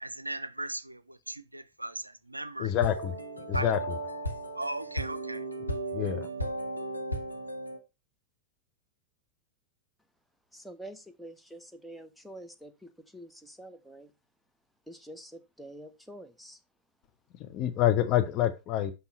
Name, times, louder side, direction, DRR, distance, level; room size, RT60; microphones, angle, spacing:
voice 1, 0.0-2.7 3.5-3.7 4.6-5.4, right 1 dB, 85° right, 0.4 m, -37 dB
voice 2, 2.6-3.2 3.5-4.0 5.9-6.3 17.4-18.9, left 12 dB, 40° left, 0.8 m, -27 dB
sound 1, 2.7-7.8, right 1 dB, 90° left, 1.0 m, -35 dB
voice 3, 10.5-14.1 14.9-16.6, right 1 dB, ahead, 0.7 m, -47 dB
5.6 x 5.5 x 4.1 m
figure-of-eight pair, 90°, 0 cm